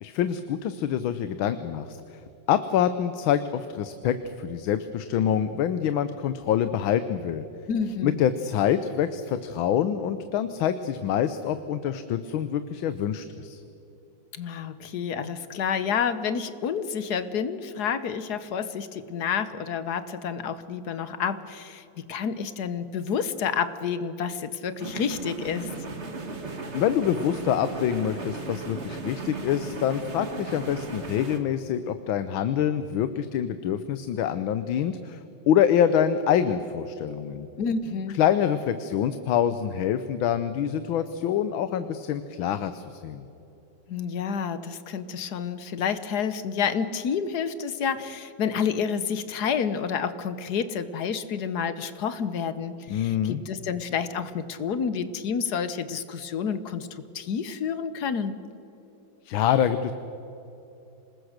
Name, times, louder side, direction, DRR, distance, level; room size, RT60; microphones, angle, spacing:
voice 1, 0.0-2.2 2.5-7.4 8.0-13.6 26.7-35.2 35.5-37.5 38.1-43.3 52.9-53.4 59.2-59.9, left 9 dB, 85° left, 11 dB, 1.6 m, -26 dB
voice 2, 7.7-8.2 14.3-25.7 37.6-38.2 43.9-58.4, left 6 dB, 60° left, 12 dB, 1.4 m, -29 dB
sound 1, 24.8-31.4, right 3 dB, 35° right, 1.9 m, -36 dB
26.5 x 20.5 x 6.6 m, 2.9 s
omnidirectional pair, 2.2 m